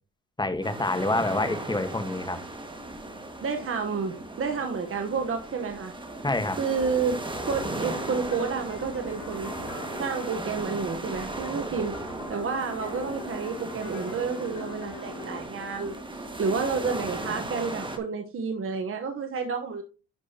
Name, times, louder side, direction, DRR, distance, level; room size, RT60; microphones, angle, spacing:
voice 1, 0.4-2.4 6.2-6.6, left 2 dB, 15° left, 1.4 m, -27 dB
sound 1, 0.6-18.0, right 2 dB, 15° right, 1.9 m, -36 dB
voice 2, 3.4-5.9 6.6-9.5 10.0-12.0 12.3-19.8, right 5 dB, 45° right, 1.2 m, -30 dB
sound 2, 7.4-15.4, left 3 dB, 80° left, 2.0 m, -43 dB
11.0 x 6.1 x 2.9 m
cardioid pair, 90°, 30 cm